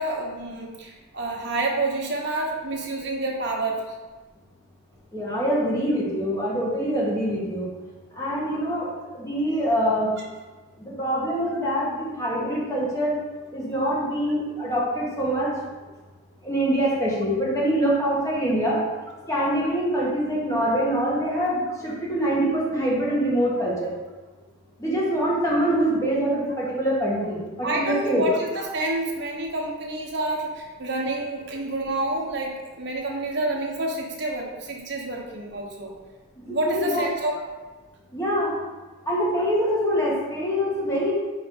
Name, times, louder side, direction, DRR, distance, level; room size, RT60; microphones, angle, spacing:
voice 1, 0.0-3.8 27.6-35.9 36.5-37.3, right 2 dB, 55° right, -1 dB, 1.2 m, -28 dB
voice 2, 5.1-7.7 8.1-10.1 10.8-13.1 13.5-15.5 16.4-18.8 19.3-23.9 24.8-28.2 36.4-37.1 38.1-38.5 39.1-41.1, equal, 15° left, -6 dB, 1.6 m, -24 dB
4.8 x 4.7 x 5.3 m, 1.3 s
head